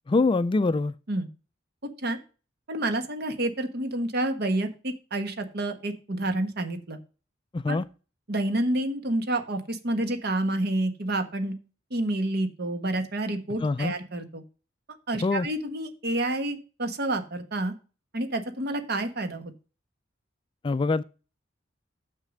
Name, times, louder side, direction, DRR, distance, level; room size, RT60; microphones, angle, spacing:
voice 1, 0.1-0.9 7.5-7.8 13.6-13.9 15.2-15.5 20.6-21.0, left 3 dB, 25° left, 0.3 m, -24 dB
voice 2, 2.7-7.0 7.7-7.8 8.3-11.5 11.9-14.4 15.1-17.7 18.1-19.5, right 1 dB, 55° right, 1.3 m, -29 dB
6.6 x 6.4 x 6.3 m
head